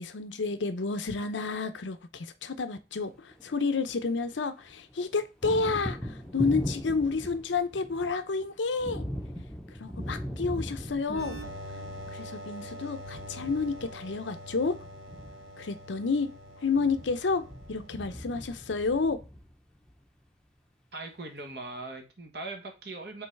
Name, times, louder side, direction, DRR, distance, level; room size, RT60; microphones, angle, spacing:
voice 1, 0.0-9.1 9.8-11.4 12.1-14.8 15.6-16.3 16.6-19.2, left 4 dB, 90° left, 0.7 m, -30 dB
Thunder, 3.2-4.4 4.6-19.9, equal, 5° left, 0.7 m, -40 dB
sound 1, 11.1-18.5, equal, 85° right, 1.1 m, -44 dB
voice 2, 20.9-23.3, right 2 dB, 60° right, 1.5 m, -40 dB
5.4 x 3.9 x 4.6 m
head